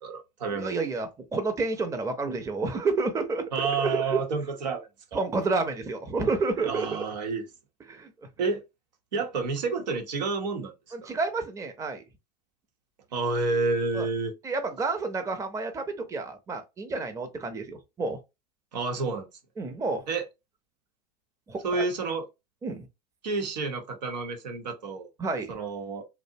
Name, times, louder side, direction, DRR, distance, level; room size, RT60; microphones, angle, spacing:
voice 1, 0.0-0.7 3.5-5.2 6.6-7.5 8.4-8.6 9.1-10.7 11.0-11.1 13.1-14.3 18.7-19.3 20.1-20.2 21.6-22.2 23.2-25.1 25.5-26.1, right 4 dB, 90° right, 0.8 m, -29 dB
voice 2, 0.5-4.2 5.1-6.9 7.9-8.1 10.9-12.0 13.9-14.1 14.4-18.2 19.6-20.0 21.5-21.8 22.6-22.9 25.2-25.5, right 3 dB, 15° right, 0.6 m, -30 dB
2.6 x 2.0 x 2.6 m
hypercardioid pair, 100°, 21 cm